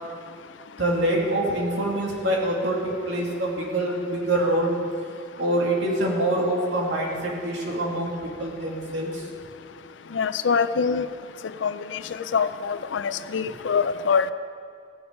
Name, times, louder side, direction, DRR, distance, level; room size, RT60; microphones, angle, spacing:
voice 1, 0.8-4.8 5.4-8.1 8.4-9.2, right 1 dB, 70° right, -2 dB, 2.5 m, -25 dB
voice 2, 10.1-11.0 11.6-11.7 12.3-14.3, left 6 dB, 75° left, 13 dB, 0.5 m, -24 dB
16.5 x 6.9 x 5.2 m, 2.3 s
head